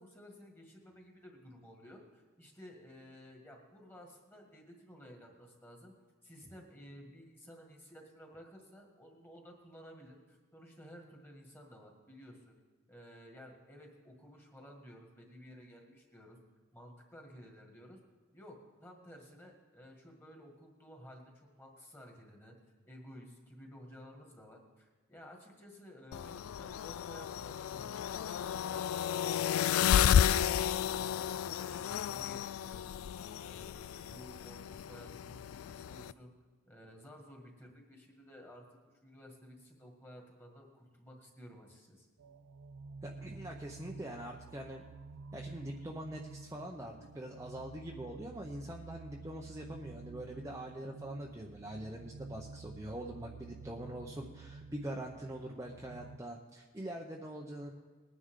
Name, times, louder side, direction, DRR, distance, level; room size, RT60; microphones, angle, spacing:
voice 1, 0.0-5.9 6.2-12.5 12.9-16.4 16.7-18.0 18.3-28.9 29.3-32.8 33.3-36.3 36.7-42.1, equal, 10° left, 1 dB, 1.9 m, -54 dB
sound 1, 26.1-36.1, left 9 dB, 90° left, 0.3 m, -32 dB
sound 2, 42.2-56.2, right 4 dB, 75° right, 0.4 m, -51 dB
voice 2, 43.0-44.9 45.3-57.7, right 1 dB, 15° right, -1 dB, 0.7 m, -43 dB
20.0 x 9.9 x 3.7 m, 1.4 s
head